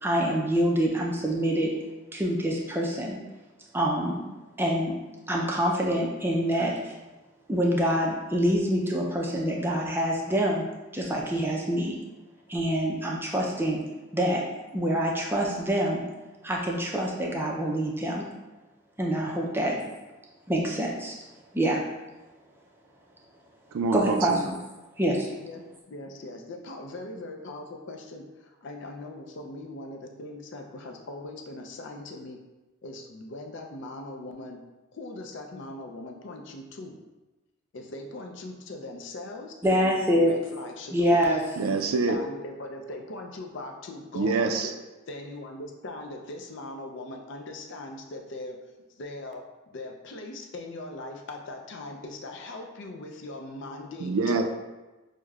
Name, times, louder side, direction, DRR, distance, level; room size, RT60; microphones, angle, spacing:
voice 1, 0.0-1.7 2.1-3.2 3.7-4.2 4.6-4.9 5.3-6.9 7.5-10.6 10.9-11.9 12.5-13.8 14.1-14.4 14.7-16.0 16.4-18.2 19.0-19.7 20.5-21.1 21.5-21.8 23.9-24.5 25.0-25.3 39.6-40.3 40.9-41.4, equal, 10° right, -2 dB, 0.4 m, -26 dB
voice 2, 19.6-19.9 24.2-24.6 25.4-25.6 25.9-32.4 32.8-34.6 34.9-37.0 37.7-41.3 42.1-44.7 45.1-48.6 49.0-54.1, left 2 dB, 60° left, 3 dB, 0.4 m, -40 dB
voice 3, 23.7-24.4 41.6-42.2 44.2-44.7 54.0-54.4, right 4 dB, 80° right, 5 dB, 0.4 m, -25 dB
6.2 x 2.1 x 2.3 m, 1.1 s
head